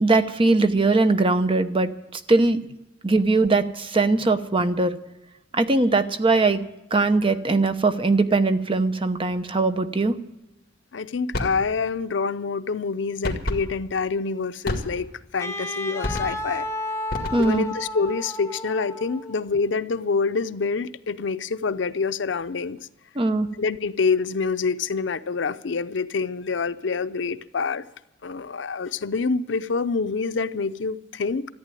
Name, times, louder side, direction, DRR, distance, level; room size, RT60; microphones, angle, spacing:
voice 1, 0.0-1.9 2.3-2.6 3.0-5.0 5.5-6.6 6.9-10.1 17.3-17.7 23.2-23.5, right 3 dB, 30° right, 0.9 m, -20 dB
voice 2, 10.9-16.7 17.4-22.8 23.5-27.9 28.2-31.5, left 4 dB, 75° left, 0.6 m, -26 dB
sound 1, 11.3-11.6 13.2-13.7 14.6-15.2 16.0-16.5 17.1-17.7, left 1 dB, 55° left, 2.1 m, -30 dB
Wind instrument woodwind instrument, 15.4-19.5, left 1 dB, 15° left, 0.9 m, -32 dB
14.5 x 9.1 x 9.1 m
head